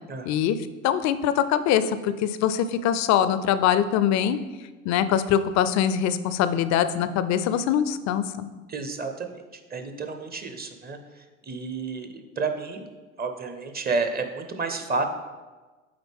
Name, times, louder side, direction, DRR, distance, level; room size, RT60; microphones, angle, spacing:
voice 1, 0.3-0.6 0.8-4.4 4.9-8.5, left 9 dB, 45° left, 13 dB, 0.5 m, -23 dB
voice 2, 8.7-9.4 9.7-11.0 11.4-12.9 13.2-15.0, right 4 dB, 25° right, 6 dB, 0.7 m, -30 dB
8.7 x 3.9 x 3.6 m, 1.3 s
hypercardioid pair, 75°, 38 cm